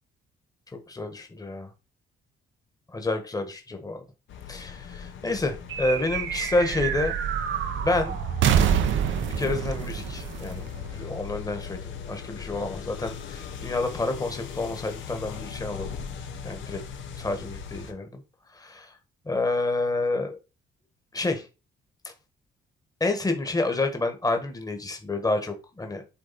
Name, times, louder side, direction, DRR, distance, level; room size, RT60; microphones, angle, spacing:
voice 1, 0.9-1.7 2.9-4.0 4.5-7.1 7.7-8.2 9.3-15.9 16.4-16.8 17.2-18.2 18.5-18.9 19.3-20.4 21.1-21.4 23.0-26.1, left 2 dB, 20° left, 6 dB, 1.5 m, -29 dB
sound 1, 4.3-17.9, left 7 dB, 75° left, 1.1 m, -39 dB
sound 2, 5.7-11.4, right 8 dB, 75° right, 0.9 m, -27 dB
8.6 x 3.4 x 4.2 m, 0.29 s
cardioid pair, 90°, 20 cm